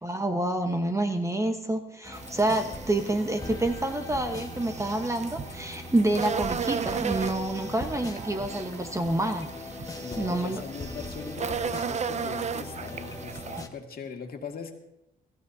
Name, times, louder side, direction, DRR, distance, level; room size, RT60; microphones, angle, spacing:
voice 1, 0.0-9.5 10.2-10.6, right 1 dB, 15° right, 6 dB, 1.1 m, -28 dB
sound 1, 2.0-13.7, left 3 dB, 15° left, 1.5 m, -40 dB
sound 2, 2.1-13.6, right 7 dB, 35° right, 0.5 m, -36 dB
voice 2, 10.0-14.7, left 5 dB, 50° left, 2 dB, 2.2 m, -40 dB
22.5 x 14.0 x 2.7 m, 0.86 s
cardioid pair, 90°, 20 cm